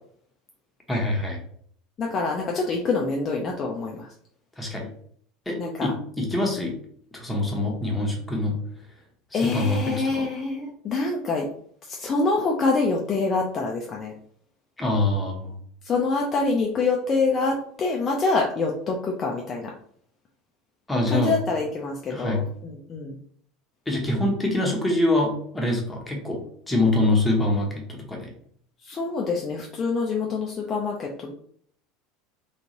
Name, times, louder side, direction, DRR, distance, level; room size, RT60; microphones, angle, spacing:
voice 1, 0.9-1.4 4.6-4.9 5.5-6.8 7.1-8.6 9.3-10.3 14.8-15.6 20.9-21.4 22.1-22.4 23.9-28.3, left 2 dB, 10° left, -1 dB, 1.0 m, -25 dB
voice 2, 2.0-4.1 5.6-5.9 6.6-6.7 9.3-11.4 11.9-14.1 15.8-19.7 21.1-23.2 28.8-31.3, left 3 dB, 30° left, -1 dB, 0.5 m, -26 dB
3.6 x 2.4 x 2.9 m, 0.62 s
figure-of-eight pair, 70°, 0 cm